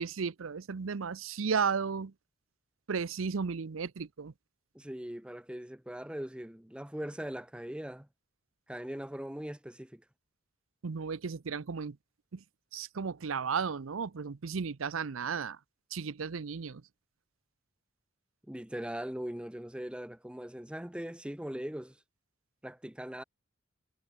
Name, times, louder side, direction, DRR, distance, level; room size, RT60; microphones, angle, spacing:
voice 1, 0.0-2.1 2.9-4.3 10.8-12.0 12.3-12.4 12.7-15.6 15.9-16.8, right 5 dB, 85° right, 0.6 m, -34 dB
voice 2, 4.7-8.1 8.7-10.0 18.5-22.0 22.6-23.2, equal, 5° right, 0.7 m, -40 dB
head